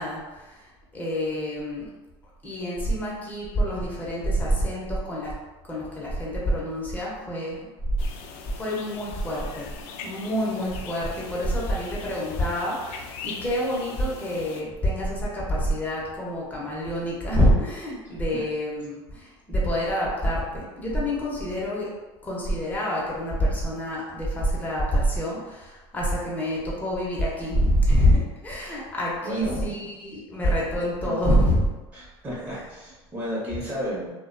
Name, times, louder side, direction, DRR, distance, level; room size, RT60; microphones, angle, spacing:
voice 1, 0.0-1.9 2.4-5.3 5.7-8.0 8.5-9.7 10.0-21.9 22.2-31.7 32.0-32.1 32.4-32.6, equal, 10° left, -6 dB, 0.9 m, -26 dB
sound 1, 8.0-14.6, left 6 dB, 60° left, 0.4 m, -41 dB
voice 2, 29.2-29.7 31.0-31.2 31.9-34.1, equal, 25° right, -8 dB, 1.0 m, -32 dB
2.4 x 2.2 x 2.5 m, 1.1 s
hypercardioid pair, 95°, 14 cm